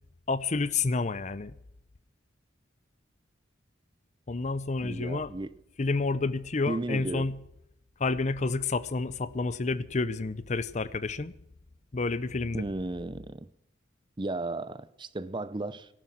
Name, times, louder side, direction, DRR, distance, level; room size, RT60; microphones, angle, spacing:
voice 1, 0.3-1.5 4.3-5.3 5.8-7.3 8.0-11.3 11.9-12.6, left 3 dB, 35° left, 0.6 m, -29 dB
voice 2, 4.8-5.5 6.7-7.3 12.5-13.5 14.2-15.9, right 2 dB, 25° right, 0.6 m, -34 dB
13.0 x 12.5 x 6.1 m
head